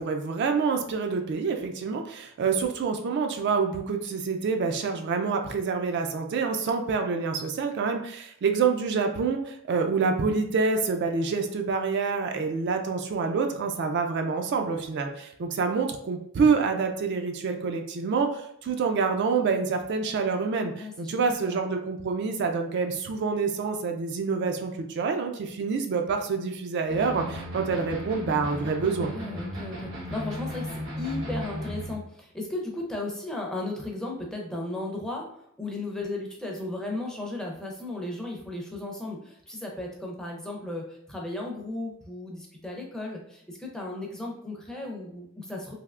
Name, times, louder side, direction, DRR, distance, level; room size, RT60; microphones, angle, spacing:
voice 1, 0.0-29.1, right 5 dB, 55° right, 4 dB, 0.3 m, -27 dB
voice 2, 20.8-21.6 28.8-30.7 31.0-35.3 35.6-45.7, left 2 dB, 5° left, -1 dB, 0.5 m, -35 dB
sound 1, 26.9-32.0, equal, 85° right, 1.0 m, -35 dB
3.3 x 2.7 x 2.4 m, 0.72 s
head